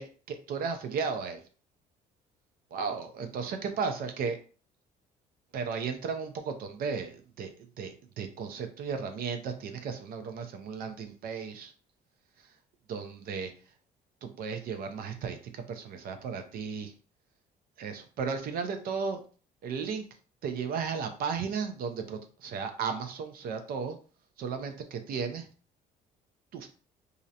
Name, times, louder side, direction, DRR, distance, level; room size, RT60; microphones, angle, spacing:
voice 1, 0.0-1.4 2.7-4.4 5.5-11.7 12.9-13.5 14.2-16.9 17.8-19.2 19.6-20.1 20.4-24.0 24.4-25.5 26.5-26.7, right 5 dB, 60° right, 7 dB, 0.4 m, -35 dB
2.4 x 2.0 x 2.7 m, 0.39 s
cardioid pair, 110°, 17 cm